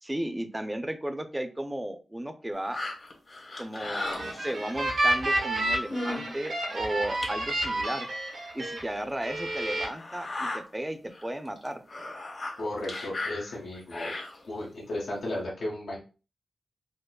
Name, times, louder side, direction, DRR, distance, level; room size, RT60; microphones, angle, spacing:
voice 1, 0.0-2.8 3.6-8.1 8.5-11.8, right 1 dB, 15° right, 8 dB, 0.6 m, -34 dB
sound 1, 2.7-4.8 5.5-5.6 5.9-6.3 6.7-6.8 7.2-7.3 8.3-8.4 8.9-9.0 9.9-10.6 11.1-11.3 11.6-14.6 15.2-15.3, left 2 dB, 60° left, 1.3 m, -36 dB
sound 2, 3.8-8.8 9.2-9.9, right 1 dB, 80° right, 1.1 m, -30 dB
voice 2, 12.6-14.1 14.5-16.0, left 1 dB, 85° left, -4 dB, 1.2 m, -34 dB
5.0 x 2.0 x 2.3 m, 0.35 s
cardioid pair, 55°, 0 cm